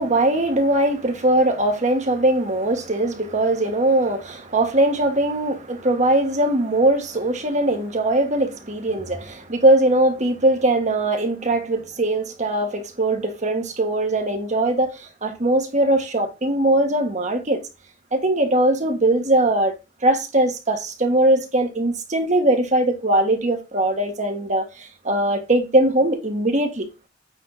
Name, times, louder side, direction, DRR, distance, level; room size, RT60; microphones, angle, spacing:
voice 1, 0.0-17.6 18.1-19.8 20.0-26.9, right 1 dB, 40° right, 1.7 m, -20 dB
8.9 x 3.7 x 4.0 m
head